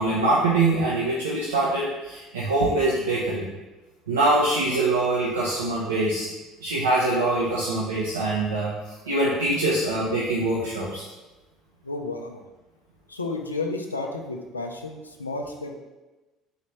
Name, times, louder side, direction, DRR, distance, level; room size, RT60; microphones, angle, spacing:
voice 1, 0.0-3.5 4.1-6.3 6.6-11.0, right 2 dB, 75° right, -6 dB, 0.6 m, -24 dB
voice 2, 11.8-12.4 13.1-15.8, left 3 dB, 85° left, 3 dB, 0.3 m, -32 dB
3.9 x 3.1 x 3.2 m, 1.1 s
figure-of-eight pair, 60°, 0 cm